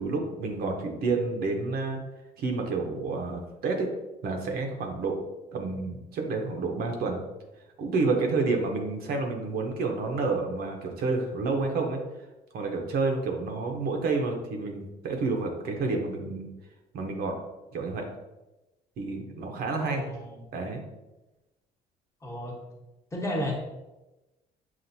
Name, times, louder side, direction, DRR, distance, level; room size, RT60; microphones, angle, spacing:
voice 1, 0.0-2.0 2.4-3.9 4.2-5.2 5.5-7.2 7.8-12.0 12.5-16.5 16.9-17.4 17.7-18.1 19.0-20.1 20.5-20.8, right 3 dB, 65° right, 2 dB, 0.7 m, -29 dB
voice 2, 19.8-20.4 22.2-22.6 23.1-23.5, left 1 dB, 20° left, -2 dB, 1.0 m, -33 dB
5.8 x 2.5 x 2.6 m, 1.0 s
cardioid pair, 110°, 17 cm